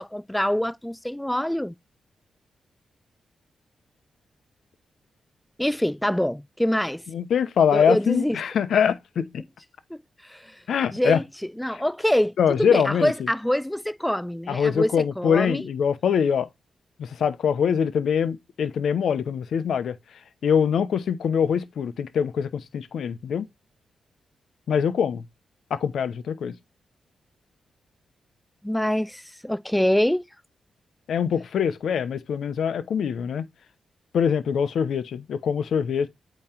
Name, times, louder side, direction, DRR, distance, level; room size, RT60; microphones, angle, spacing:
voice 1, 0.0-1.8 5.6-7.0 7.7-8.4 9.9-10.6 10.9-11.2 11.6-15.6 28.6-30.2, left 1 dB, 5° left, 0.3 m, -25 dB
voice 2, 7.1-9.4 10.7-11.2 11.7-11.8 12.4-13.3 14.5-16.5 17.0-20.0 20.4-23.5 24.7-25.2 25.7-26.6 31.1-33.5 34.1-36.1, left 7 dB, 75° left, 0.7 m, -23 dB
8.7 x 3.1 x 4.3 m
cardioid pair, 75°, 0 cm